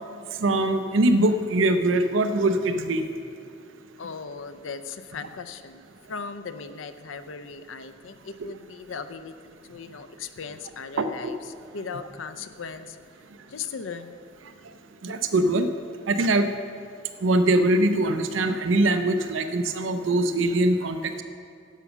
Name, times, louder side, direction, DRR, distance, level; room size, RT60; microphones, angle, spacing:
voice 1, 0.4-3.0 11.0-11.1 15.0-15.7 16.1-16.5 17.2-21.2, right 2 dB, 80° right, 8 dB, 0.6 m, -22 dB
voice 2, 4.0-5.8 6.1-13.0 13.5-14.2, left 5 dB, 85° left, 11 dB, 0.6 m, -38 dB
10.0 x 7.2 x 6.0 m, 2.4 s
head